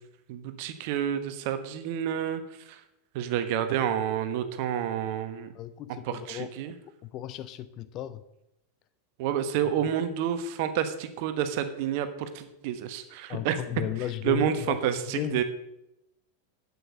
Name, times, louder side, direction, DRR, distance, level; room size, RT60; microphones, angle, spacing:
voice 1, 0.3-2.8 3.1-5.5 6.1-6.7 9.2-13.6 14.2-15.4, right 9 dB, 45° right, 10 dB, 1.1 m, -29 dB
voice 2, 5.5-6.7 7.0-8.2 13.3-15.4, left 12 dB, 35° left, 14 dB, 0.5 m, -35 dB
8.5 x 7.9 x 6.3 m, 0.86 s
figure-of-eight pair, 90°, 0 cm